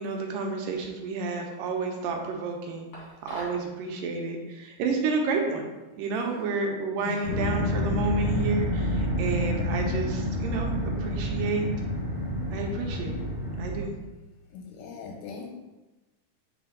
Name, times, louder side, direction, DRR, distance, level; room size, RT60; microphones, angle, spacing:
voice 1, 0.0-2.9 3.2-5.7 6.0-11.7 12.5-13.2 13.6-13.9, right 4 dB, 75° right, 2 dB, 2.3 m, -30 dB
sound 1, 2.9-3.7, left 1 dB, 40° left, 1.6 m, -42 dB
voice 2, 7.0-7.3 14.5-15.5, left 6 dB, 80° left, 2 dB, 2.1 m, -40 dB
sound 2, 7.2-13.8, left 1 dB, 20° left, 0.8 m, -28 dB
7.8 x 4.1 x 3.8 m, 1.1 s
omnidirectional pair, 4.2 m